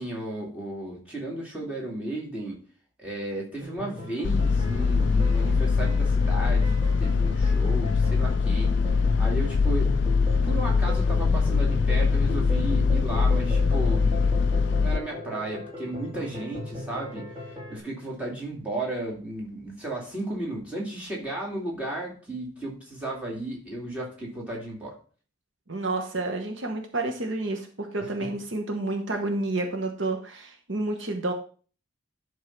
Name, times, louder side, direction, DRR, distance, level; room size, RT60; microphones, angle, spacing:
voice 1, 0.0-2.6 3.0-8.8 9.2-10.0 10.4-14.3 14.8-24.9 28.0-28.3, right 1 dB, 5° right, -4 dB, 2.5 m, -34 dB
sound 1, 3.6-17.8, left 1 dB, 20° right, 2.6 m, -38 dB
sound 2, 4.2-15.0, left 4 dB, 55° left, 0.3 m, -22 dB
voice 2, 25.7-31.3, right 2 dB, 60° right, 4 dB, 1.1 m, -30 dB
11.0 x 3.7 x 5.9 m, 0.40 s
head